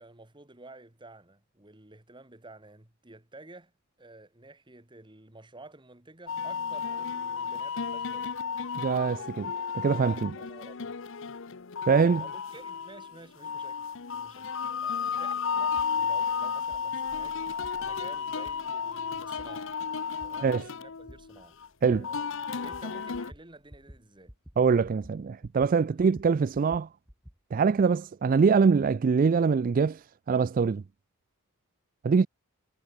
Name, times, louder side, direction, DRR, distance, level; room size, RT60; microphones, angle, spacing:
voice 1, 0.0-3.7 4.0-8.4 10.3-11.0 12.2-13.8 14.1-19.8 20.2-21.6 22.0-22.3 22.6-24.4 25.9-26.0, right 2 dB, 20° right, 2.2 m, -51 dB
sound 1, 6.3-23.3, left 6 dB, 65° left, 0.8 m, -33 dB
voice 2, 8.8-10.4 11.9-12.2 20.4-20.6 21.8-22.1 24.6-26.9 27.5-30.0 30.3-30.8 32.0-32.3, right 5 dB, 40° right, 0.3 m, -24 dB
sound 2, 15.8-15.9 16.7-16.8 17.6-17.7 18.4-18.5 19.4-19.5 20.2-20.3 21.1-21.2 21.9-22.0 22.7-22.8 23.1-23.4 23.7-24.0 24.3-24.6 24.8-25.7 26.0-27.4, equal, 5° right, 2.3 m, -49 dB
Thunder, 16.1-24.5, left 1 dB, 85° left, 5.0 m, -64 dB
head